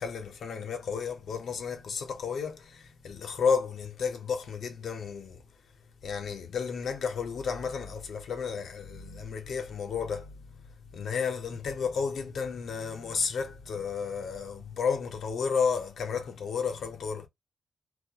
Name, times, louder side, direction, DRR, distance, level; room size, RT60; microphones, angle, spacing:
voice 1, 0.0-5.4 6.0-10.7 10.9-17.3, left 6 dB, 85° left, 0.5 m, -32 dB
2.2 x 2.1 x 2.7 m
wide cardioid pair, 155°, 0 cm